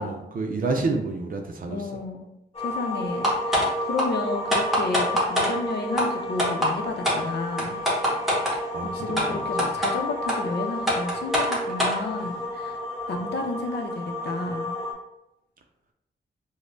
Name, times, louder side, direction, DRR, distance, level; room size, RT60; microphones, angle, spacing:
voice 1, 0.0-2.0 8.7-9.7, right 3 dB, 50° right, 4 dB, 0.5 m, -30 dB
voice 2, 1.7-2.3 2.6-7.8 8.8-12.8 13.1-14.8, left 3 dB, 70° left, 3 dB, 0.6 m, -32 dB
sound 1, 2.5-14.9, left 1 dB, 35° left, 1.0 m, -32 dB
sound 2, 3.2-3.7 4.0-4.1 4.5-5.5 6.0-6.1 6.4-6.7 7.0-7.2 7.6-8.6 9.2-9.3 9.6-9.9 10.3-10.4 10.9-12.0, equal, ahead, 1.2 m, -23 dB
5.0 x 2.1 x 2.5 m, 0.84 s
cardioid pair, 100°, 18 cm